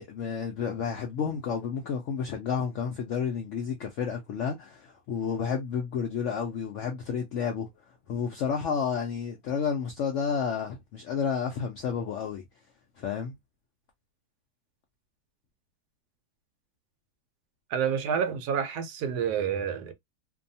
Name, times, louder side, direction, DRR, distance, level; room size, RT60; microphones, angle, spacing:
voice 1, 0.0-7.7 8.1-12.4 13.0-13.3, left 6 dB, 75° left, 0.6 m, -31 dB
voice 2, 17.7-19.9, right 7 dB, 75° right, 1.1 m, -28 dB
2.6 x 2.2 x 2.6 m
omnidirectional pair, 1.8 m